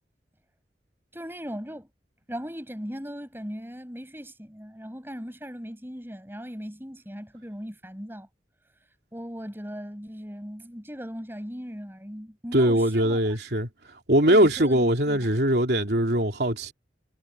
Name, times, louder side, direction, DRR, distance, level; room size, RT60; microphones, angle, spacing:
voice 1, 1.1-1.9 2.3-8.3 9.1-13.4 14.2-15.3, equal, 10° right, 6.4 m, -38 dB
voice 2, 12.5-13.7 14.1-16.7, right 1 dB, 70° right, 3.3 m, -21 dB
head